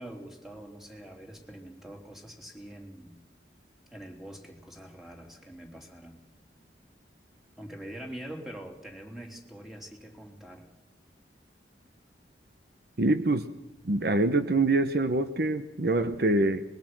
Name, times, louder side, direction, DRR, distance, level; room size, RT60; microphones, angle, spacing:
voice 1, 0.0-3.2 3.9-6.2 7.6-10.7, right 1 dB, ahead, 2 dB, 3.3 m, -44 dB
voice 2, 13.0-13.5 13.8-16.6, right 2 dB, 60° right, 10 dB, 1.0 m, -25 dB
24.5 x 21.5 x 6.1 m, 0.89 s
head